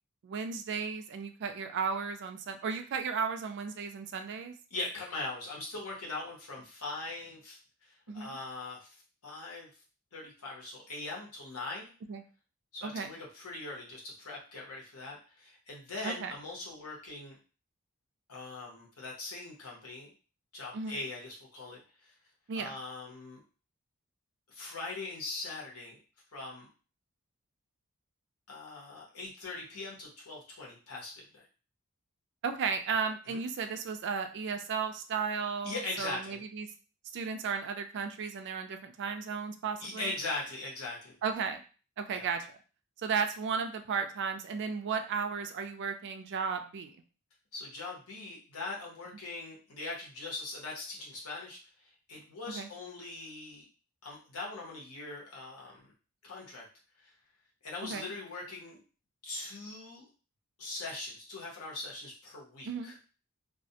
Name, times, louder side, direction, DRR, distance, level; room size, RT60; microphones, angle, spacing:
voice 1, 0.2-4.6 8.1-8.4 12.1-12.2 12.8-13.1 16.0-16.3 20.7-21.0 22.5-22.8 32.4-36.7 37.1-40.1 41.2-41.6 42.0-42.5 43.0-47.0 52.5-52.7 57.8-58.1 62.7-62.9, right 5 dB, 55° right, 7 dB, 0.3 m, -34 dB
voice 2, 4.7-8.9 9.2-9.7 10.1-11.9 12.7-17.4 18.3-20.1 20.5-22.1 22.5-23.4 24.5-26.0 26.3-26.7 28.5-31.4 33.3-33.4 35.6-36.4 39.8-41.2 42.1-42.3 47.5-53.7 54.0-55.9 56.2-56.6 57.0-57.1 57.6-58.8 59.2-60.0 60.6-62.9, left 2 dB, 85° left, -3 dB, 1.0 m, -41 dB
2.4 x 2.1 x 2.7 m, 0.37 s
head